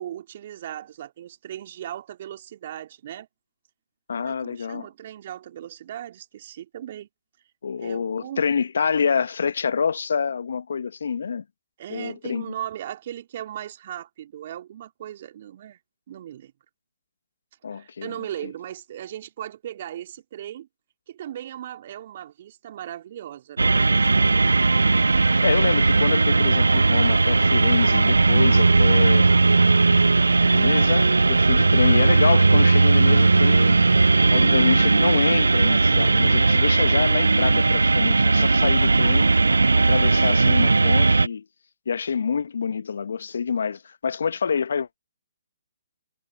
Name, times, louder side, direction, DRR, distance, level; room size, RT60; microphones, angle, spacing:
voice 1, 0.0-3.3 4.2-7.1 7.8-8.4 11.8-15.8 16.1-16.5 17.7-20.7 21.1-24.6, right 11 dB, 45° right, 2.9 m, -37 dB
voice 2, 4.1-4.9 7.6-11.4 11.9-12.4 17.6-18.1 25.4-29.3 30.4-33.8 34.3-39.3 39.8-41.5 41.8-45.0, left 6 dB, 65° left, 1.4 m, -26 dB
sound 1, 23.6-41.3, right 3 dB, 80° right, 0.5 m, -18 dB
figure-of-eight pair, 135°, 0 cm